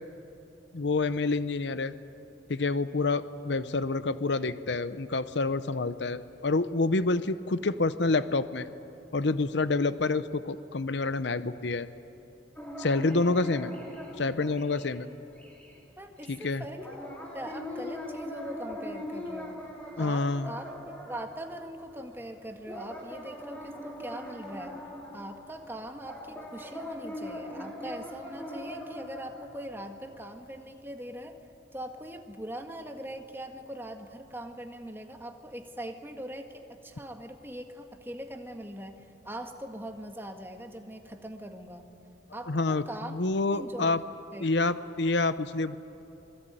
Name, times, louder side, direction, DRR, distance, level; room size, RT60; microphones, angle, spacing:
voice 1, 0.7-1.9 2.5-8.7 9.1-11.9 12.8-13.7 14.2-15.1 16.3-16.6 20.0-20.5 42.5-42.8 43.1-44.0 44.4-45.7, left 3 dB, 65° left, 14 dB, 0.8 m, -28 dB
sound 1, 12.6-15.1 15.4-15.8 16.2-22.3 22.7-30.2, left 1 dB, 10° left, 4.1 m, -41 dB
voice 2, 16.0-16.9 17.3-19.6 20.0-24.8 25.1-31.4 31.7-41.9 42.3-43.1 43.5-44.0 44.3-44.5, right 1 dB, 10° right, 5 dB, 1.7 m, -41 dB
27.0 x 21.5 x 9.0 m, 2.9 s
head